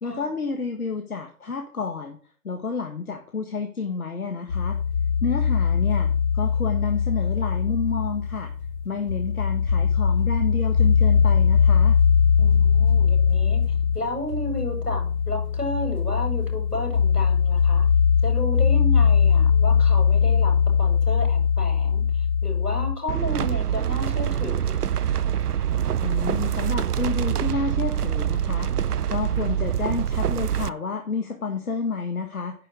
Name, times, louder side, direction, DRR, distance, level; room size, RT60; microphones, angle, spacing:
voice 1, 0.0-2.2 2.4-4.8 5.2-6.1 6.3-8.5 8.8-12.0 26.0-28.7 29.1-32.5, left 4 dB, 65° left, 5 dB, 1.6 m, -30 dB
sound 1, 4.5-22.9, left 6 dB, 5° left, 1.6 m, -21 dB
voice 2, 12.4-13.6 13.9-17.9 18.2-24.8, left 1 dB, 85° left, 2 dB, 6.3 m, -32 dB
sound 2, 23.1-30.7, right 9 dB, 80° right, 0.6 m, -25 dB
10.5 x 5.7 x 6.3 m, 0.43 s
figure-of-eight pair, 155°, 46 cm